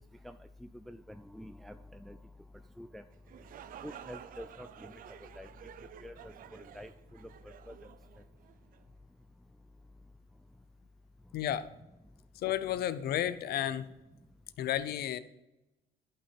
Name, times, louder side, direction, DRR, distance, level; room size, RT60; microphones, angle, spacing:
voice 1, 0.9-1.7 2.0-2.2 2.8-3.0 3.8-4.7 5.4-5.5 6.0-6.9 7.7-7.8, equal, ahead, 8 dB, 0.4 m, -46 dB
sound 1, 3.1-8.8, right 9 dB, 55° right, 0.6 m, -51 dB
voice 2, 11.3-11.7 12.4-13.9 14.6-15.2, left 11 dB, 70° left, 15 dB, 0.7 m, -32 dB
11.0 x 6.1 x 4.8 m, 0.98 s
cardioid pair, 110°, 17 cm